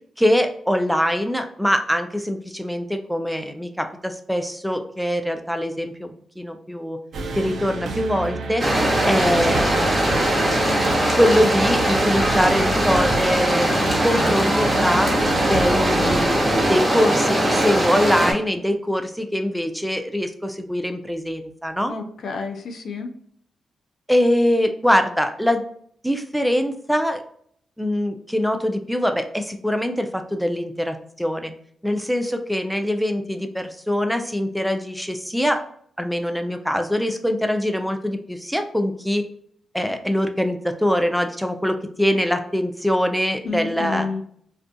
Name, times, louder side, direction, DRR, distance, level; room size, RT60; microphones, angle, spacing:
voice 1, 0.2-7.0 7.4-8.6 9.1-10.0 11.2-15.1 15.5-21.9 24.1-25.6 26.0-27.2 27.8-31.5 31.8-35.6 36.0-39.2 39.7-44.1, equal, ahead, 6 dB, 0.4 m, -23 dB
sound 1, 7.1-16.8, right 2 dB, 70° right, 0.4 m, -30 dB
sound 2, 8.6-18.3, right 1 dB, 25° right, 1.0 m, -20 dB
Wind instrument woodwind instrument, 10.1-12.8 13.1-14.7 14.9-16.1 16.3-16.6, left 1 dB, 30° left, 1.2 m, -35 dB
voice 2, 21.9-23.1 43.4-44.2, left 4 dB, 70° left, 5 dB, 0.4 m, -29 dB
2.4 x 2.3 x 2.5 m, 0.64 s
supercardioid pair, 45°, 0 cm